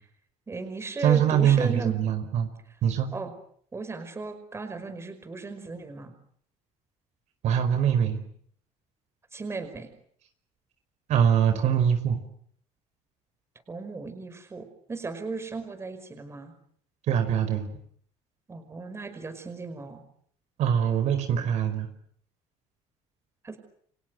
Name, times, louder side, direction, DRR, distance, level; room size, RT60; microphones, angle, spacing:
voice 1, 0.5-2.0 3.1-3.3 3.7-6.1 9.3-9.9 13.7-16.5 18.5-20.0 23.4-23.6, right 3 dB, 20° right, 9 dB, 5.3 m, -36 dB
voice 2, 1.0-2.5 2.8-3.1 7.4-8.2 11.1-12.2 17.1-17.7 20.6-21.9, right 8 dB, 60° right, 8 dB, 4.9 m, -23 dB
29.5 x 25.0 x 8.0 m, 0.63 s
cardioid pair, 130°, 13 cm